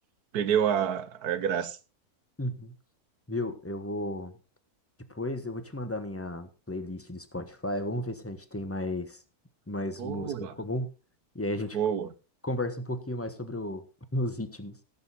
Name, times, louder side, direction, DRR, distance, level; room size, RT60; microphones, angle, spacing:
voice 1, 0.3-1.8 10.0-10.5 11.7-12.1, right 8 dB, 85° right, 1.5 m, -28 dB
voice 2, 2.4-2.7 3.3-4.3 5.1-9.2 9.7-10.9 11.3-11.8 12.4-13.8 14.1-14.8, left 1 dB, 10° left, 1.1 m, -33 dB
16.0 x 8.0 x 4.2 m
omnidirectional pair, 1.6 m